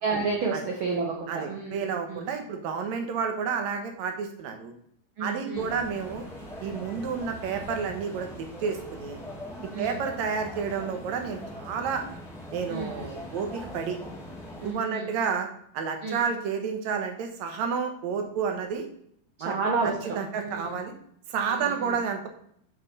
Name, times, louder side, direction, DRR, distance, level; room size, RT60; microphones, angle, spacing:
voice 1, 0.0-2.3 5.2-5.7 9.7-10.0 12.7-12.9 14.6-15.1 16.0-16.2 19.4-20.8 21.5-22.0, right 4 dB, 85° right, 0 dB, 1.1 m, -31 dB
voice 2, 1.3-4.7 5.2-6.2 6.6-9.2 9.8-12.0 12.5-14.0 14.6-15.5 15.7-18.9 19.4-19.5 19.8-20.9 21.3-22.3, right 6 dB, 70° right, 5 dB, 2.1 m, -30 dB
sound 1, 5.5-14.7, equal, 5° left, 0.5 m, -41 dB
7.7 x 4.3 x 4.0 m, 0.67 s
omnidirectional pair, 3.6 m